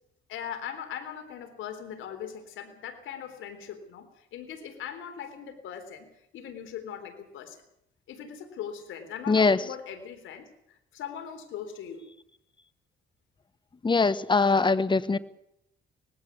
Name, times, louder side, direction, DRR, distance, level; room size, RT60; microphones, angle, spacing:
voice 1, 0.3-7.6 8.1-12.1, left 8 dB, 80° left, 7 dB, 3.7 m, -40 dB
voice 2, 9.3-9.6 13.8-15.2, left 4 dB, 25° left, 15 dB, 1.2 m, -22 dB
20.0 x 16.5 x 8.4 m, 0.78 s
cardioid pair, 90°, 20 cm